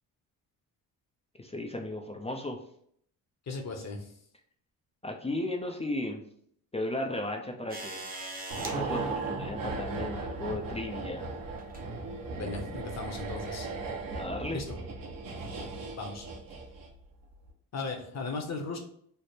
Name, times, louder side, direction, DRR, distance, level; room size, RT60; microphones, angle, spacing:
voice 1, 1.4-2.6 5.0-6.2 6.7-8.0 8.6-11.3 14.1-14.6, left 1 dB, 15° left, 1 dB, 0.4 m, -35 dB
voice 2, 3.5-4.1 12.3-13.7 14.5-14.8 16.0-16.3 17.7-18.8, left 3 dB, 45° left, 4 dB, 0.9 m, -37 dB
sound 1, 7.7-8.8 10.2-10.3 11.6-11.9 12.8-12.9, right 2 dB, 25° right, 0.8 m, -40 dB
sound 2, 8.5-17.0 17.3-17.5, right 3 dB, 60° right, 1.1 m, -37 dB
3.3 x 2.0 x 4.2 m, 0.66 s
cardioid pair, 85°, 38 cm